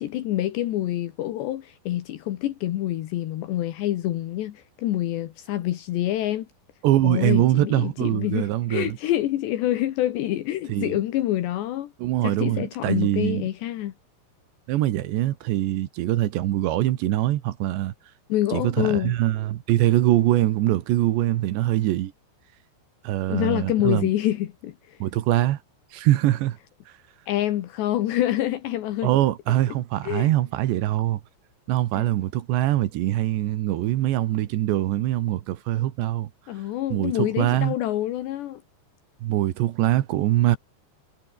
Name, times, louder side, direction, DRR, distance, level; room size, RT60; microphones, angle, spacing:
voice 1, 0.0-6.5 7.0-11.9 12.2-13.9 18.3-19.2 23.3-25.0 27.3-29.1 29.7-29.8 30.1-30.3 31.9-32.1 36.5-38.6, left 13 dB, 75° left, 3.4 m, -26 dB
voice 2, 6.8-9.0 10.7-11.0 12.0-13.4 14.7-17.9 18.5-22.1 23.0-24.1 25.0-25.6 25.9-26.6 29.0-31.2 31.7-36.3 36.9-37.8 39.2-40.6, right 14 dB, 75° right, 3.4 m, -23 dB
omnidirectional pair, 5.3 m